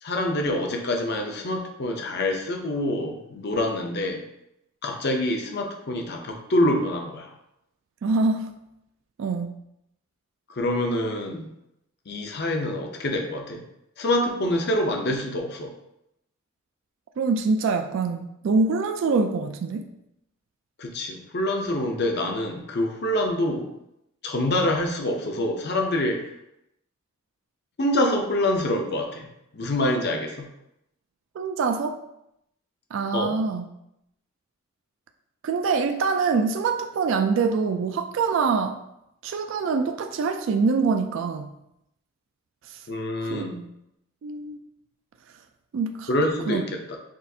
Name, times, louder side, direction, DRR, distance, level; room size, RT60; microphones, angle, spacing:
voice 1, 0.0-4.2 4.8-7.3 10.6-11.5 12.1-13.6 14.0-15.7 20.8-23.7 24.2-26.3 27.8-29.3 29.5-30.5 33.1-33.4 42.9-43.7 46.1-47.0, left 1 dB, 50° left, 3 dB, 0.6 m, -26 dB
voice 2, 8.0-8.5 9.2-9.6 17.2-19.9 31.4-32.0 32.9-33.7 35.4-38.8 39.2-41.5 43.2-43.4 44.2-44.6 45.7-46.1 46.5-46.6, right 4 dB, 60° right, 6 dB, 0.3 m, -24 dB
6.0 x 2.5 x 2.7 m, 0.81 s
head